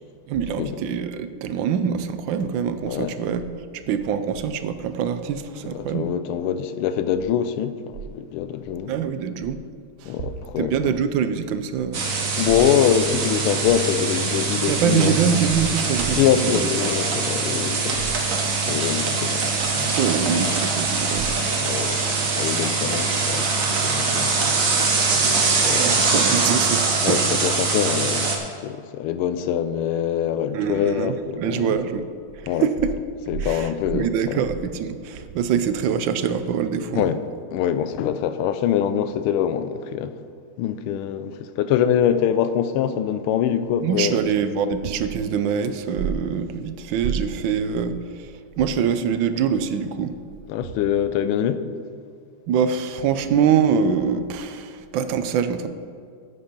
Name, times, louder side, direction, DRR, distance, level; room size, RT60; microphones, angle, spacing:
voice 1, 0.3-3.5 3.7-6.1 8.9-9.6 10.0-10.1 10.6-12.0 14.7-16.7 19.8-21.3 25.8-27.4 30.5-32.1 32.4-32.9 33.4-37.1 43.8-50.1 52.5-55.7, right 7 dB, 75° right, 1.2 m, -24 dB
voice 2, 5.6-8.9 10.0-10.9 12.4-15.2 16.1-18.1 18.7-19.4 21.6-22.1 22.3-24.4 25.7-26.2 27.0-31.8 32.5-32.7 33.3-34.4 36.9-37.2 37.5-40.1 40.6-44.2 50.5-51.7, left 9 dB, 90° left, 1.5 m, -24 dB
sound 1, 11.9-28.4, right 4 dB, 45° right, 1.5 m, -23 dB
9.6 x 8.5 x 5.3 m
omnidirectional pair, 2.3 m